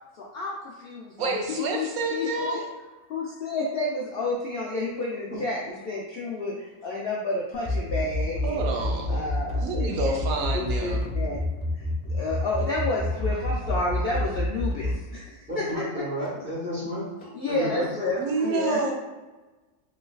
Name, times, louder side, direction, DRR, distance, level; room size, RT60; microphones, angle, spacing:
voice 1, 0.1-1.9 2.1-2.6 3.1-8.6 9.1-11.4 11.7-15.4 15.7-15.8 17.3-18.9, left 2 dB, 70° left, -4 dB, 0.5 m, -30 dB
voice 2, 1.2-2.7 8.4-9.2 9.6-11.1 18.2-18.9, right 3 dB, 85° right, 1 dB, 1.1 m, -28 dB
sound 1, 7.5-14.9, left 2 dB, 25° left, 0.9 m, -28 dB
sound 2, 8.0-8.6 9.1-9.2 9.5-9.8 10.1-10.2 10.6-10.7 11.0-11.2 11.6-11.7 12.2-12.3 12.6-12.8 13.2-13.3 13.8-13.9 14.1-14.9 15.3-15.4 15.7-16.9 17.2-17.3, left 3 dB, 85° left, 1.1 m, -48 dB
voice 3, 15.5-17.1 17.5-17.9, equal, 10° right, -7 dB, 0.9 m, -32 dB
3.2 x 3.0 x 2.3 m, 1.2 s
omnidirectional pair, 1.5 m